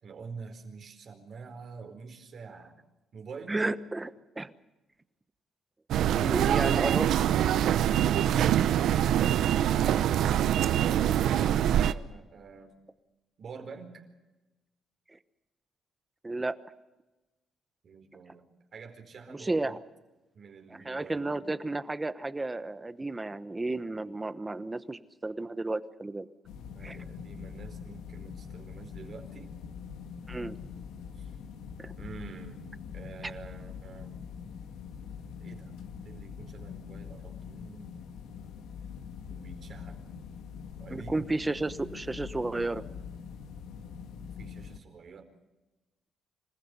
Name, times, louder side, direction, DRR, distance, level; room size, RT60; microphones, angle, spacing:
voice 1, 0.0-2.8 3.1-3.6 11.1-12.7 13.4-14.0 17.8-19.8 20.3-21.3 26.7-29.6 31.2-31.3 32.0-32.7 32.9-34.2 35.4-35.7 36.0-37.9 39.3-40.0 40.8-41.2 44.4-45.3, right 5 dB, 55° right, 5 dB, 4.5 m, -47 dB
voice 2, 3.5-4.1 4.4-4.5 6.2-7.1 15.1-15.2 16.2-16.6 19.3-19.8 20.8-26.3 26.8-27.0 30.3-30.6 31.8-31.9 40.9-42.8, right 2 dB, 20° right, 13 dB, 1.1 m, -32 dB
sound 1, 5.9-11.9, right 10 dB, 75° right, 0.8 m, -24 dB
sound 2, 26.4-44.8, left 6 dB, 85° left, 1.7 m, -43 dB
26.5 x 15.5 x 8.2 m, 1.1 s
cardioid pair, 90°, 0 cm